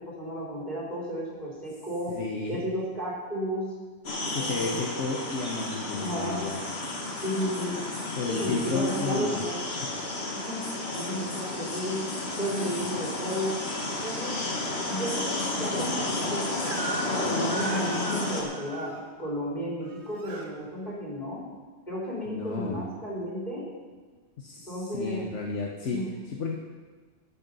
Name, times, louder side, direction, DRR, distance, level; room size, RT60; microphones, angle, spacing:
voice 1, 0.0-2.1 2.5-3.7 4.2-4.8 6.0-6.4 7.2-7.7 8.3-9.6 10.3-12.0 12.4-13.6 14.0-14.4 14.9-21.4 21.9-23.6 24.7-25.3 25.9-26.2, equal, 40° left, -6 dB, 4.5 m, -33 dB
voice 2, 2.1-2.6 4.3-6.9 8.2-9.4 9.8-9.9 22.3-22.8 24.4-26.0 26.4-26.6, left 3 dB, 75° left, -1 dB, 1.4 m, -32 dB
sound 1, 4.0-18.4, left 2 dB, 60° left, 1.9 m, -32 dB
Crying sobbing / Screech, 16.7-17.2 17.5-19.0 19.8-20.5, right 4 dB, 65° right, 1.4 m, -38 dB
13.0 x 8.5 x 5.5 m, 1.4 s
omnidirectional pair, 1.2 m